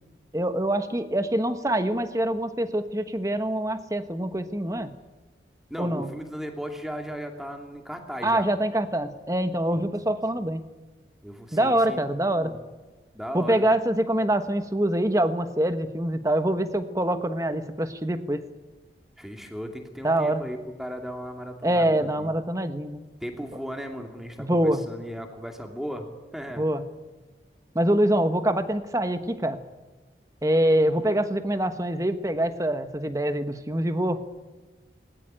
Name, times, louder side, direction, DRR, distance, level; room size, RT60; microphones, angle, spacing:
voice 1, 0.3-4.9 5.8-6.1 8.2-10.6 11.5-12.5 13.3-18.4 20.0-20.4 21.6-23.0 24.4-24.8 26.6-26.8 27.7-29.6 30.4-34.4, right 1 dB, 20° right, 9 dB, 1.2 m, -25 dB
voice 2, 5.7-8.5 9.7-9.9 10.4-10.5 11.2-12.6 13.1-13.6 19.2-22.3 23.2-26.1 26.3-26.7, equal, ahead, 3 dB, 2.5 m, -37 dB
19.5 x 19.0 x 9.0 m, 1.3 s
head